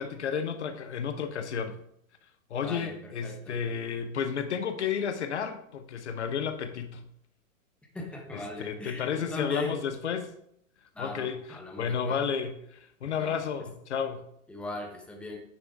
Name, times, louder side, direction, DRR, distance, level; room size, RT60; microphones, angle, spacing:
voice 1, 0.0-1.8 2.5-7.1 8.3-10.3 11.0-14.2, left 7 dB, 55° left, 10 dB, 0.9 m, -32 dB
voice 2, 2.6-3.6 7.9-9.8 10.9-12.2 13.2-13.4 14.5-15.4, left 2 dB, 5° left, 2 dB, 1.0 m, -38 dB
9.0 x 6.9 x 3.7 m, 0.71 s
figure-of-eight pair, 105°, 40 cm